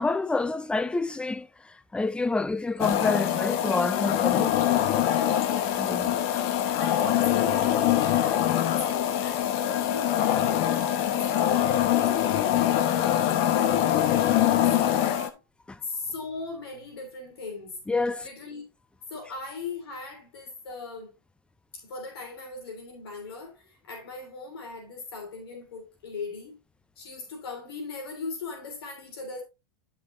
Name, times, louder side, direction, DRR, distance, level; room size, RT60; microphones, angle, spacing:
voice 1, 0.0-4.6 5.8-6.1 15.7-15.8 17.9-18.3, left 3 dB, 10° left, 0.5 m, -28 dB
sound 1, 2.8-15.3, left 11 dB, 55° left, 1.0 m, -24 dB
voice 2, 5.4-6.3 6.8-11.8 12.7-15.4 15.8-17.8 18.2-18.6 19.1-21.1 21.7-26.6 27.0-29.4, left 4 dB, 80° left, 3.1 m, -39 dB
11.0 x 5.6 x 2.6 m
hypercardioid pair, 100°, 13 cm